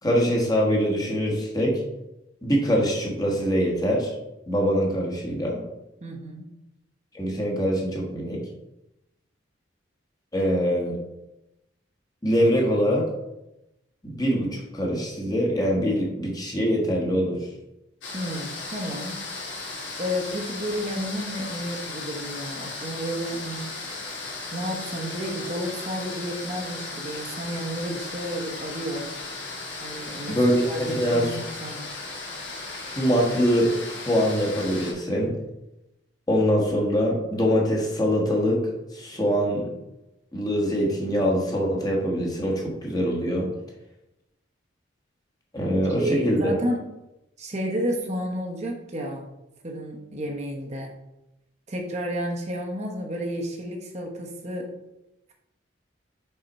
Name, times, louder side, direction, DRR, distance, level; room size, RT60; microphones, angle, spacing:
voice 1, 0.0-1.8 2.4-4.1 4.5-5.6 7.1-8.4 10.3-11.0 12.2-13.0 14.0-17.4 30.2-31.2 33.0-35.3 36.3-38.6 38.9-39.7 40.3-43.5 45.5-46.6, equal, 20° left, -2 dB, 1.3 m, -23 dB
voice 2, 6.0-6.5 18.1-19.2 20.0-23.7 24.5-29.1 29.8-31.8 46.0-46.8 47.4-49.3 49.6-50.9 51.7-54.7, equal, 35° right, 0 dB, 1.0 m, -31 dB
sound 1, 18.0-34.9, left 3 dB, 70° left, 1.7 m, -36 dB
5.6 x 5.0 x 4.1 m, 0.93 s
head